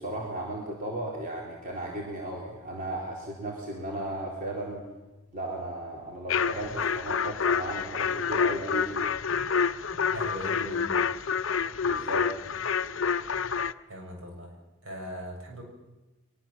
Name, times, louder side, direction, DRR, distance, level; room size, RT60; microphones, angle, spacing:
voice 1, 0.0-4.8 5.3-9.0 11.8-12.3, right 1 dB, 40° right, -2 dB, 3.9 m, -35 dB
sound 1, 6.3-13.7, left 6 dB, 60° left, 0.7 m, -28 dB
voice 2, 10.1-10.9 13.9-14.5 14.8-15.6, equal, 65° right, 1 dB, 7.8 m, -39 dB
23.0 x 22.0 x 7.5 m, 1.1 s
head